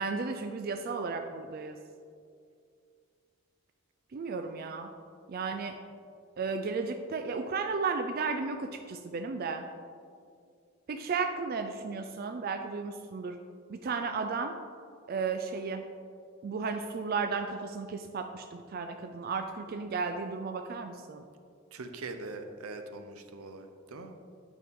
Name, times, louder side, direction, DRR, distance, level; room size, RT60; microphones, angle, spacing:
voice 1, 0.0-1.8 4.1-4.9 5.3-5.8 6.4-9.7 10.9-13.4 13.7-14.5 15.1-15.9 16.4-21.3, right 4 dB, 45° right, 6 dB, 0.3 m, -34 dB
voice 2, 21.7-24.1, right 3 dB, 85° right, 7 dB, 0.7 m, -42 dB
8.5 x 6.2 x 3.6 m, 2.3 s
head